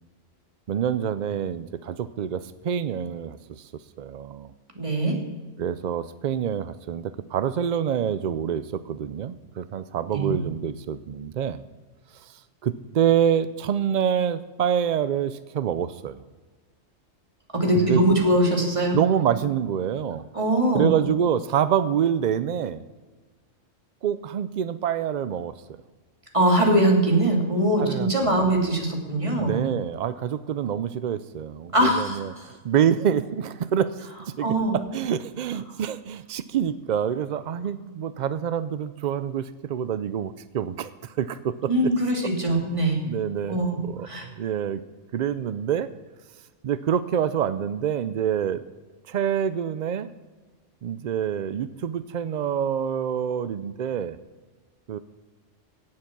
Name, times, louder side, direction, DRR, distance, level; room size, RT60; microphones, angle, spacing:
voice 1, 0.7-3.7 4.0-4.5 5.6-11.6 12.1-16.2 17.7-18.1 18.9-20.3 20.7-22.8 24.0-25.5 27.8-28.4 29.4-41.9 42.2-42.6 43.0-44.8 45.1-45.9 46.6-48.6 49.1-50.1 50.8-54.2 54.9-55.0, right 9 dB, 75° right, 14 dB, 0.4 m, -26 dB
voice 2, 4.8-5.2 10.1-10.3 17.5-19.0 20.3-20.9 26.3-29.6 31.7-32.2 34.4-34.8 41.7-43.0 43.5-44.3, right 1 dB, 25° right, 0 dB, 2.6 m, -22 dB
17.0 x 7.7 x 5.9 m, 1.3 s
omnidirectional pair, 1.3 m